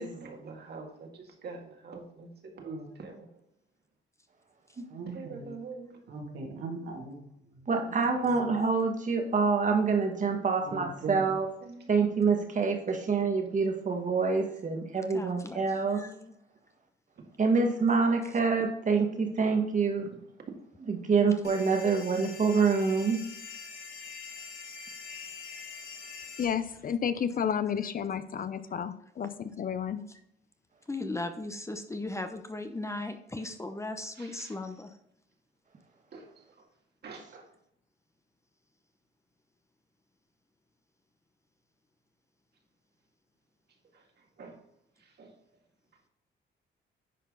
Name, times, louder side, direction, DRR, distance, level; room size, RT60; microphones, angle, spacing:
voice 1, 0.0-3.3 5.1-6.0 11.2-11.3 11.6-11.9 12.1-12.4 17.2-17.3 34.2-34.5 36.1-36.3 37.0-37.5 43.9-44.0 44.4-44.6 45.2-45.3, right 4 dB, 55° right, 2.0 m, -45 dB
voice 2, 4.9-5.5 6.1-8.0 8.3-8.7 10.6-11.2, right 3 dB, 75° right, 2.5 m, -40 dB
voice 3, 7.7-11.5 11.9-16.0 17.4-20.1 20.9-23.2, right 4 dB, 40° right, 1.8 m, -26 dB
voice 4, 15.1-16.4 30.1-30.2 30.9-35.0, left 2 dB, 15° left, 0.7 m, -37 dB
sound 1, 21.4-26.4, left 5 dB, 85° left, 2.0 m, -44 dB
voice 5, 26.4-30.0, left 7 dB, 45° left, 0.6 m, -31 dB
10.0 x 4.6 x 3.9 m
cardioid pair, 90°, 20 cm